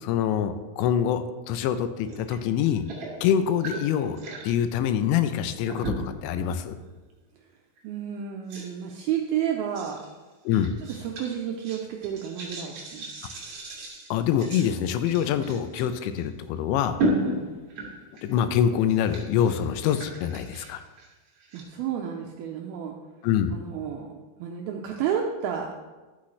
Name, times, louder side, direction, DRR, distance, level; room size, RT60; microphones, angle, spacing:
voice 1, 0.0-2.8 3.2-4.2 4.4-6.7 10.5-10.8 14.1-17.0 18.2-20.8 23.2-23.5, left 9 dB, 85° left, 10 dB, 2.9 m, -25 dB
sound 1, 2.1-2.4 2.7-4.5 5.7-6.3 6.8-7.0 7.8-7.9 8.5-9.0 9.7-10.1 10.5-15.8 16.2-16.3 17.0-18.4 18.7-21.6, right 1 dB, 40° right, 2.4 m, -34 dB
voice 2, 7.8-10.0 10.9-13.1 17.2-17.5 21.5-22.9 23.5-25.7, right 8 dB, 85° right, 1 dB, 2.2 m, -31 dB
11.5 x 8.6 x 3.2 m, 1.2 s
omnidirectional pair, 5.1 m